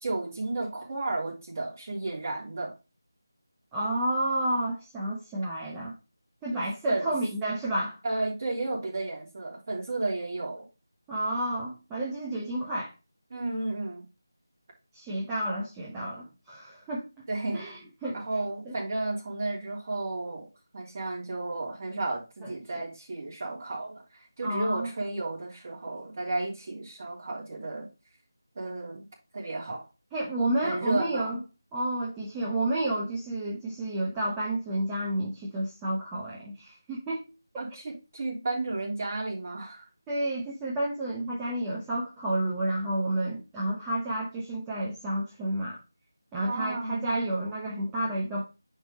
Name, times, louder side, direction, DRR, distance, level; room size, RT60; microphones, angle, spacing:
voice 1, 0.0-2.7 6.5-7.1 8.0-10.7 13.3-14.0 17.3-17.6 18.1-20.5 20.7-27.9 28.6-29.1 29.3-29.9 30.6-31.4 37.6-39.9 46.4-47.0, right 2 dB, 35° right, -3 dB, 3.4 m, -33 dB
voice 2, 3.7-5.9 6.4-8.0 11.1-12.9 14.9-17.0 17.5-18.2 18.7-18.8 22.4-22.5 24.4-24.9 30.1-31.4 31.7-37.2 40.1-45.8 46.3-48.5, right 1 dB, 10° right, -5 dB, 1.0 m, -30 dB
10.0 x 3.5 x 3.9 m, 0.28 s
figure-of-eight pair, 165°, 2 cm